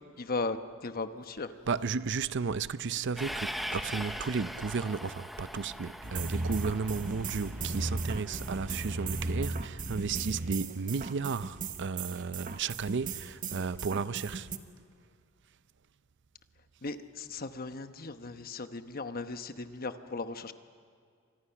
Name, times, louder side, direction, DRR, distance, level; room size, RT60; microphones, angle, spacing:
voice 1, 0.2-0.6 0.8-1.5 16.8-20.5, left 3 dB, 45° left, 1.0 m, -37 dB
voice 2, 1.7-14.5, right 5 dB, 55° right, 0.6 m, -33 dB
Train, 3.2-9.5, equal, ahead, 0.9 m, -41 dB
sound 1, 6.0-14.6, right 3 dB, 40° right, 1.2 m, -36 dB
29.0 x 25.5 x 5.8 m
head